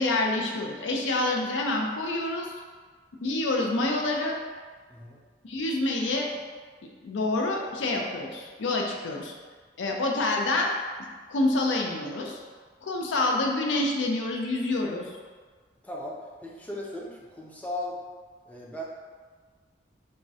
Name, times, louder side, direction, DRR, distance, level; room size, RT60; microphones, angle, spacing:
voice 1, 0.0-2.5 3.2-4.4 5.4-6.3 7.0-9.3 9.8-10.7 11.3-12.4 12.8-15.0, left 2 dB, 85° left, 1 dB, 0.4 m, -27 dB
voice 2, 15.8-18.0 18.5-18.9, left 1 dB, 10° left, -3 dB, 0.4 m, -37 dB
3.5 x 2.0 x 2.6 m, 1.5 s
head